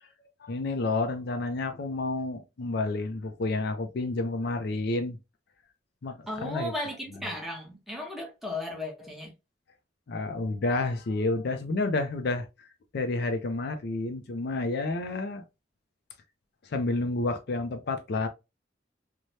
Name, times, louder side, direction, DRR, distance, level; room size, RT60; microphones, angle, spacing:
voice 1, 0.4-5.2 6.0-6.7 10.1-12.5 12.9-15.4 16.6-18.3, left 2 dB, 60° left, 0.4 m, -30 dB
voice 2, 6.3-9.3, left 1 dB, ahead, 0.8 m, -35 dB
3.1 x 2.1 x 2.6 m
head